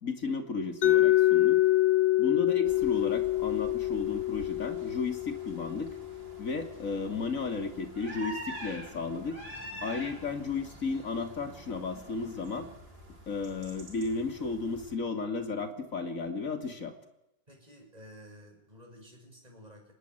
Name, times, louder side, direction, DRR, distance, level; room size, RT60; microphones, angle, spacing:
voice 1, 0.0-1.6 2.2-5.9 6.4-9.4 9.8-12.7 13.3-16.9, left 4 dB, 45° left, 7 dB, 3.2 m, -34 dB
Mallet percussion, 0.8-6.7, left 15 dB, 85° left, 1.9 m, -26 dB
sound 1, 2.6-14.9, right 1 dB, 75° right, 6.4 m, -46 dB
voice 2, 17.5-19.9, equal, 20° right, 2 dB, 8.1 m, -52 dB
25.0 x 19.5 x 9.8 m, 0.88 s
omnidirectional pair, 2.0 m